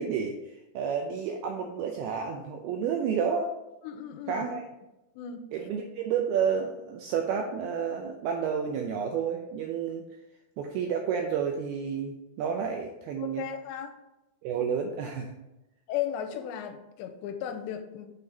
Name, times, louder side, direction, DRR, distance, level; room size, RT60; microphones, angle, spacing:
voice 1, 0.0-3.5 4.3-4.6 5.5-10.1 10.6-13.4 14.4-15.4, right 7 dB, 80° right, 3 dB, 2.3 m, -30 dB
voice 2, 3.8-4.6 5.2-5.5 13.2-13.9 15.9-18.1, left 9 dB, 85° left, 7 dB, 2.9 m, -35 dB
6.7 x 5.8 x 4.0 m, 0.94 s
omnidirectional pair, 5.1 m